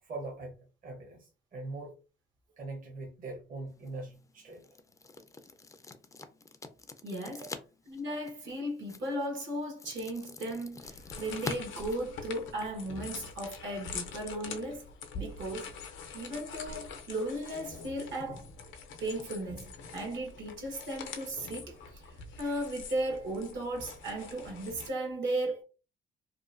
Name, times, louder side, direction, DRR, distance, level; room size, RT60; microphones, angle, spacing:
voice 1, 0.0-1.9 2.6-4.6, right 2 dB, 45° right, 0.8 m, -42 dB
sound 1, 3.7-12.7, left 3 dB, 15° left, 0.3 m, -46 dB
voice 2, 7.0-7.5 7.9-14.9 15.1-15.8 16.1-18.4 19.0-25.6, right 1 dB, 70° right, 1.1 m, -36 dB
sound 2, 10.8-24.9, left 5 dB, 75° left, 0.5 m, -45 dB
2.8 x 2.1 x 2.5 m
cardioid pair, 90°, 20 cm